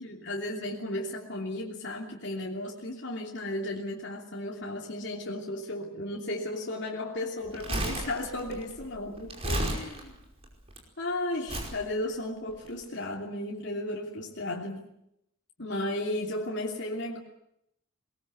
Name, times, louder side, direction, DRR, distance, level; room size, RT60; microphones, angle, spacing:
voice 1, 0.0-10.1 11.0-14.9 15.6-17.2, left 1 dB, 55° left, -1 dB, 3.0 m, -34 dB
Crumpling crinkling, 7.4-10.8 11.5-11.8 12.5-12.7, right 1 dB, 30° right, 5.1 m, -33 dB
22.5 x 20.5 x 8.0 m, 0.78 s
head